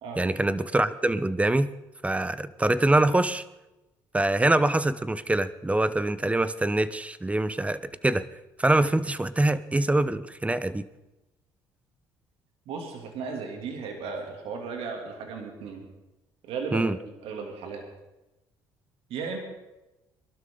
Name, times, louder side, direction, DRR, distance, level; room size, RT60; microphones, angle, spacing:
voice 1, 0.2-1.7 2.0-3.4 4.1-8.3 8.6-10.8 16.7-17.0, right 2 dB, 15° right, 15 dB, 0.8 m, -24 dB
voice 2, 12.7-15.9 16.4-16.9 17.2-17.8 19.1-19.4, right 5 dB, 75° right, 2 dB, 2.9 m, -35 dB
22.0 x 12.5 x 3.9 m, 0.99 s
supercardioid pair, 70°, 10 cm